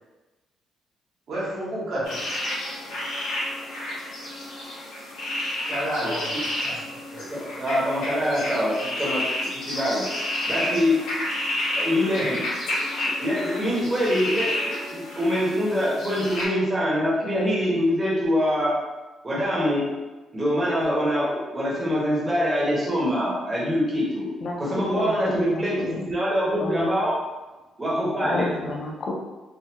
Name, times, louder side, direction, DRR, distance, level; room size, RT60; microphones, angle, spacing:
voice 1, 1.3-2.3 5.6-6.4 6.6-7.6, right 1 dB, 60° right, -6 dB, 1.1 m, -31 dB
sound 1, 2.0-16.4, left 1 dB, 90° left, 1.3 m, -30 dB
voice 2, 7.3-10.1 10.5-11.0 11.8-12.5 13.2-18.8 19.2-19.9 20.3-24.3 24.6-27.1 27.8-28.5, equal, 20° right, -6 dB, 1.1 m, -24 dB
voice 3, 24.4-26.1 26.6-26.9 28.2-29.1, left 2 dB, 50° left, 0 dB, 0.4 m, -31 dB
3.4 x 2.1 x 2.9 m, 1.1 s
cardioid pair, 120°, 0 cm